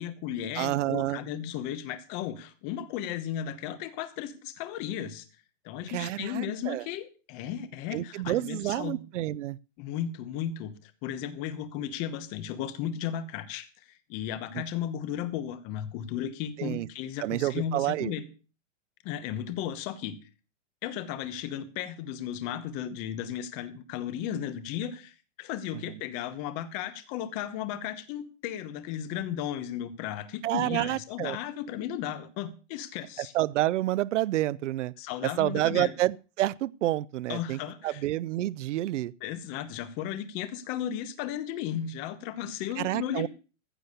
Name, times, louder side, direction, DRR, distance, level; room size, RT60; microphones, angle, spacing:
voice 1, 0.0-5.3 5.6-9.0 9.8-13.7 14.1-18.2 19.0-20.2 20.8-33.3 35.0-35.9 37.3-38.0 39.2-43.3, left 10 dB, 20° left, 0.9 m, -35 dB
voice 2, 0.6-1.2 5.9-6.8 7.9-9.6 14.5-14.6 16.6-16.9 17.2-18.2 25.9-26.0 30.4-31.4 33.2-34.9 35.2-39.1 42.8-43.3, right 15 dB, 70° right, 0.6 m, -29 dB
15.0 x 6.9 x 6.7 m
supercardioid pair, 175°, 37 cm